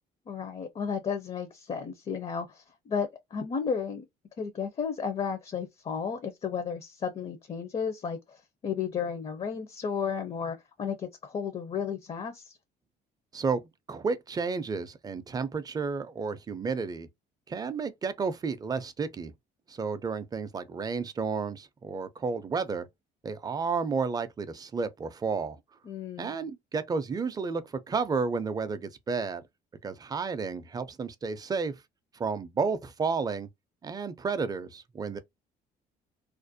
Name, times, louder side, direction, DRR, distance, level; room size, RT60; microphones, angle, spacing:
voice 1, 0.3-4.0 4.4-12.6 25.9-26.3, left 6 dB, 35° left, 0.5 m, -33 dB
voice 2, 13.9-17.1 17.5-19.3 19.7-22.9 23.2-25.6 26.2-29.4 29.8-31.7 32.1-33.5 33.8-35.2, right 5 dB, 20° right, 0.4 m, -31 dB
2.5 x 2.1 x 2.5 m
cardioid pair, 110°, 17 cm